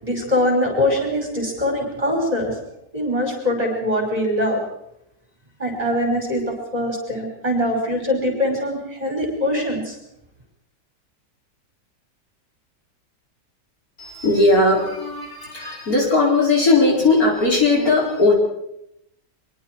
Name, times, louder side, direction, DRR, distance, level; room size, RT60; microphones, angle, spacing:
voice 1, 0.0-2.6 2.9-4.6 5.6-10.0, left 1 dB, 20° right, 1 dB, 5.8 m, -22 dB
voice 2, 14.0-18.3, left 2 dB, 55° left, -1 dB, 5.1 m, -18 dB
24.0 x 23.5 x 4.7 m, 0.81 s
omnidirectional pair, 1.8 m